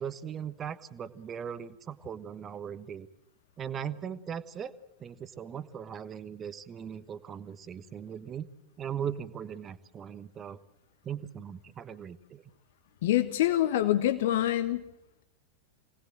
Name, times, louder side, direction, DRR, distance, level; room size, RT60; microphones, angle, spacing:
voice 1, 0.0-3.1 3.6-4.7 5.0-8.5 8.8-10.6 11.0-12.4, right 8 dB, 25° right, 14 dB, 1.2 m, -39 dB
voice 2, 13.0-14.8, left 13 dB, 55° left, 9 dB, 1.3 m, -25 dB
26.0 x 19.0 x 7.6 m, 0.83 s
figure-of-eight pair, 90°, 0 cm